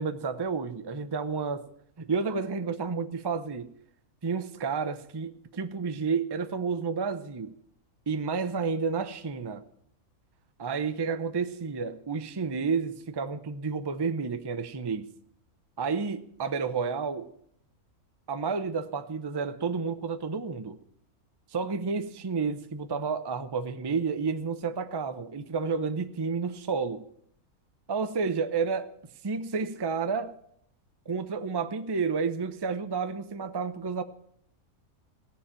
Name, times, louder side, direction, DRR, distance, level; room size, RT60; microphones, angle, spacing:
voice 1, 0.0-1.6 2.0-3.7 4.2-7.6 8.1-9.6 10.6-15.1 15.8-17.3 18.3-20.8 21.5-27.1 27.9-28.9 29.2-30.4 31.1-34.0, right 5 dB, 25° right, 0.6 m, -30 dB
17.0 x 7.2 x 8.9 m
omnidirectional pair, 1.5 m